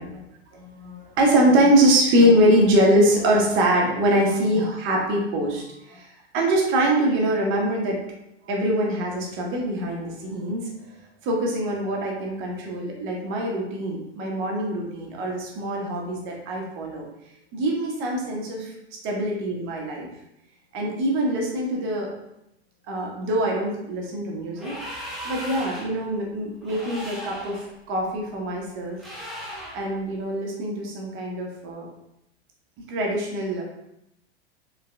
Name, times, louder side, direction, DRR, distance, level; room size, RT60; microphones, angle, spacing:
voice 1, 0.5-6.1 6.3-8.0 8.4-10.7 11.2-17.0 17.5-18.7 19.0-20.1 20.7-22.1 22.9-29.0 29.7-31.8 32.9-33.6, right 1 dB, 40° right, -1 dB, 1.1 m, -23 dB
sound 1, 24.5-26.0 26.6-27.6 29.0-29.9, equal, ahead, 1.0 m, -37 dB
4.7 x 3.4 x 2.2 m, 0.82 s
figure-of-eight pair, 90°, 32 cm